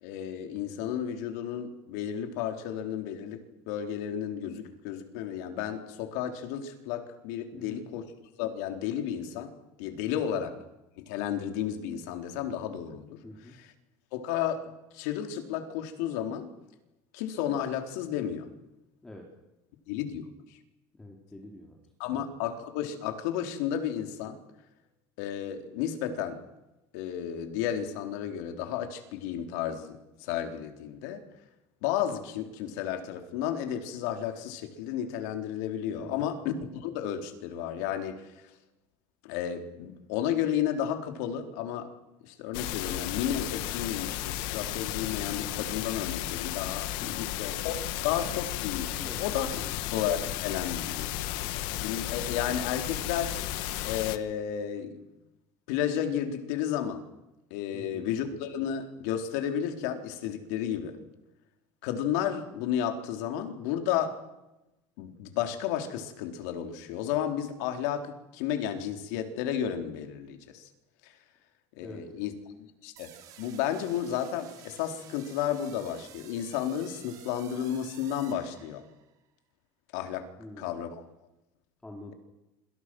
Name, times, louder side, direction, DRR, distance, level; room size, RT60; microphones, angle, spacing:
voice 1, 0.0-8.0 8.4-9.5 9.8-10.6 11.0-13.2 13.5-13.7 14.1-14.7 14.9-16.5 17.1-18.5 19.9-20.2 20.5-20.6 22.0-24.4 25.2-26.4 26.9-31.2 31.8-38.5 39.2-41.9 42.2-49.5 49.9-51.1 51.4-53.4 53.8-55.1 55.7-57.0 57.5-61.0 61.8-64.2 65.0-70.7 71.0-71.1 71.8-72.3 72.8-78.8 79.9-80.3 80.6-81.1, left 9 dB, 80° left, 6 dB, 4.0 m, -32 dB
voice 2, 7.5-7.8 13.2-13.5 19.0-19.3 21.0-21.8 36.0-36.3 47.0-47.3 48.9-49.3 49.6-49.8 57.7-58.0 71.8-72.0 80.4-80.8 81.8-82.1, left 1 dB, 10° left, 1 dB, 3.2 m, -46 dB
sound 1, 42.5-54.2, left 15 dB, 60° left, 1.6 m, -34 dB
sound 2, 73.0-79.1, right 11 dB, 45° right, 3.5 m, -52 dB
28.0 x 26.5 x 6.3 m, 0.94 s
cardioid pair, 170°, 9 cm